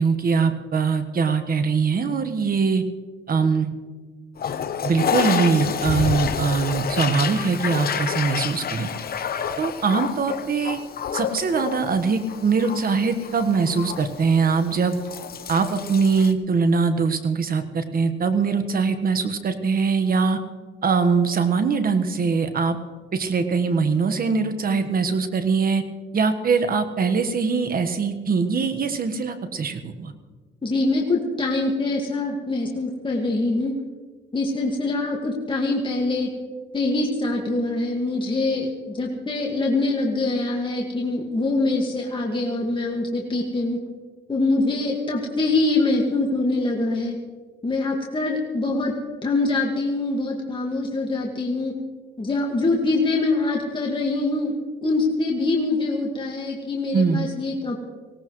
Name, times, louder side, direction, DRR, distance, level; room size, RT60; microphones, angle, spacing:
voice 1, 0.0-2.8 3.3-3.7 4.8-8.9 9.6-10.8 11.1-15.0 15.5-20.4 20.8-22.8 23.1-25.8 26.1-30.1 56.9-57.3, right 5 dB, 50° right, 9 dB, 1.4 m, -22 dB
Toilet flush, 4.4-16.3, left 7 dB, 50° left, 0.9 m, -29 dB
voice 2, 30.6-33.8 34.3-36.3 36.7-43.8 44.3-47.2 47.6-51.8 52.2-54.5 54.8-57.8, left 2 dB, 25° left, -1 dB, 1.9 m, -24 dB
19.5 x 17.5 x 3.2 m, 1.4 s
cardioid pair, 90°, 20 cm